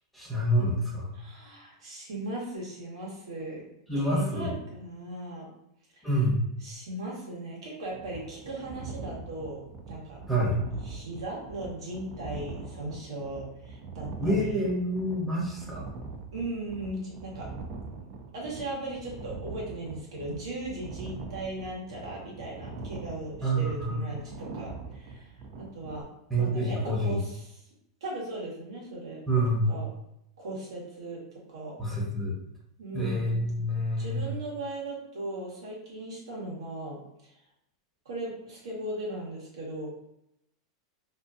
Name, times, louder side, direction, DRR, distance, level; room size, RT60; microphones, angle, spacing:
voice 1, 0.1-1.2 3.9-4.6 6.0-6.4 10.3-10.6 14.2-15.9 23.4-24.0 26.3-27.2 29.3-29.8 31.8-32.3 32.9-34.3, equal, ahead, -6 dB, 0.9 m, -27 dB
voice 2, 1.2-3.6 4.0-5.5 5.9-6.1 6.6-9.6 9.9-10.2 10.8-14.6 16.3-17.5 18.3-25.3 25.6-26.1 26.3-27.6 28.0-29.2 29.7-29.9 30.4-31.2 31.5-31.8 32.8-33.4 34.0-37.3 38.0-39.9, right 1 dB, 90° right, -4 dB, 1.1 m, -38 dB
sound 1, 7.9-26.0, right 4 dB, 45° right, 0.5 m, -42 dB
2.7 x 2.5 x 2.4 m, 0.79 s
supercardioid pair, 130°, 3 cm